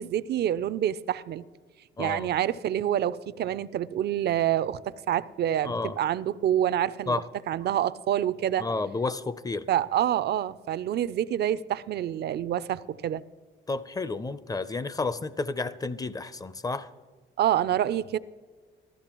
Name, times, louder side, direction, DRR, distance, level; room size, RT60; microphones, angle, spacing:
voice 1, 0.0-1.5 2.0-7.2 7.5-8.7 9.7-13.2 17.4-18.2, right 11 dB, 55° right, 0.4 m, -27 dB
voice 2, 2.0-2.3 5.6-6.0 7.1-7.2 8.6-9.7 13.7-16.9, left 3 dB, 20° left, 0.4 m, -31 dB
14.5 x 13.5 x 3.0 m
cardioid pair, 90°, 20 cm